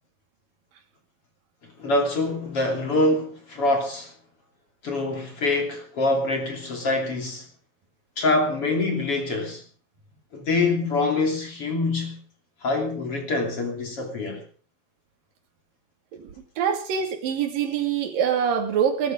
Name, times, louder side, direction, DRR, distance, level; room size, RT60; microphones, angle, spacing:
voice 1, 1.6-4.1 4.8-7.5 8.2-9.6 10.3-12.2 12.6-14.4, left 2 dB, 40° left, 3.5 m, -25 dB
voice 2, 16.6-19.1, right 7 dB, 65° right, 4.2 m, -24 dB
20.0 x 12.0 x 5.2 m
omnidirectional pair, 4.4 m